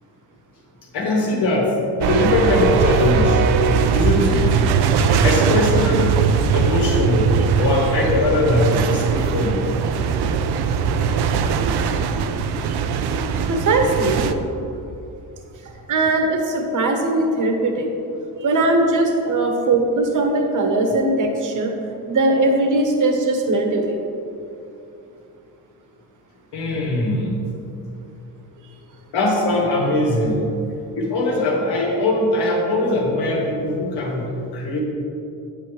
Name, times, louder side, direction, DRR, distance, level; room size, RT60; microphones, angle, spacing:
voice 1, 0.9-1.7 2.0-3.4 3.9-4.6 5.2-6.1 6.5-7.3 7.6-9.8 26.5-27.4 29.1-30.5 31.0-34.8, left 2 dB, 85° left, -2 dB, 2.1 m, -20 dB
sound 1, 2.0-14.3, right 6 dB, 80° right, 0.6 m, -20 dB
voice 2, 13.5-14.3 15.9-17.9 18.4-21.7 22.1-23.9, right 2 dB, 50° right, 3 dB, 1.2 m, -19 dB
8.9 x 8.6 x 3.3 m, 2.7 s
cardioid pair, 115°, 39 cm